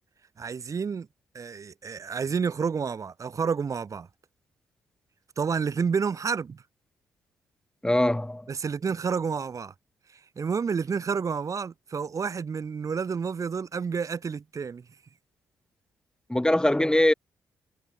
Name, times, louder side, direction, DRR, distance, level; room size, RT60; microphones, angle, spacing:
voice 1, 0.4-1.1 1.3-4.1 5.4-6.6 8.5-9.7 10.4-14.8, right 6 dB, 50° right, 6.4 m, -29 dB
voice 2, 7.8-8.5 16.3-17.1, left 1 dB, 10° left, 4.8 m, -22 dB
hypercardioid pair, 40°, 7 cm